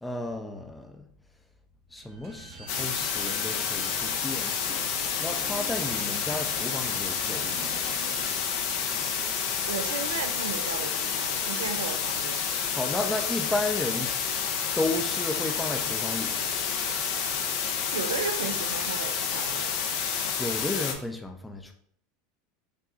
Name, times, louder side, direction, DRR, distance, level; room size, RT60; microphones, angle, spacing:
voice 1, 0.0-1.1 1.9-4.8 5.2-7.5 8.3-9.3 12.7-14.1 14.8-16.4 20.4-21.7, left 2 dB, 10° left, 4 dB, 0.5 m, -33 dB
Slam / Squeak, 2.0-9.2, right 2 dB, 55° right, 1.1 m, -47 dB
sound 1, 2.7-20.9, left 6 dB, 60° left, 0.6 m, -29 dB
voice 2, 9.6-12.5 17.9-19.8, right 6 dB, 75° right, 7 dB, 0.4 m, -35 dB
6.4 x 2.3 x 2.5 m, 0.63 s
hypercardioid pair, 85°, 0 cm